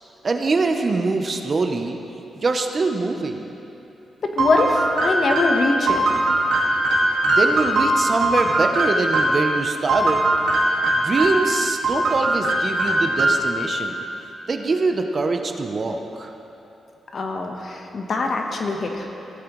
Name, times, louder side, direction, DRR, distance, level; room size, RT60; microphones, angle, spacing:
voice 1, 0.2-2.0 2.4-3.4 7.2-10.3 10.9-14.0 14.5-16.3, right 3 dB, 35° right, 5 dB, 0.6 m, -23 dB
voice 2, 4.2-6.0 17.1-19.1, left 3 dB, 45° left, 3 dB, 1.0 m, -23 dB
sound 1, 4.4-9.5 9.9-11.5 11.8-13.6, right 1 dB, 80° right, 1.8 m, -20 dB
16.5 x 8.7 x 3.1 m, 2.9 s
wide cardioid pair, 140°, 0 cm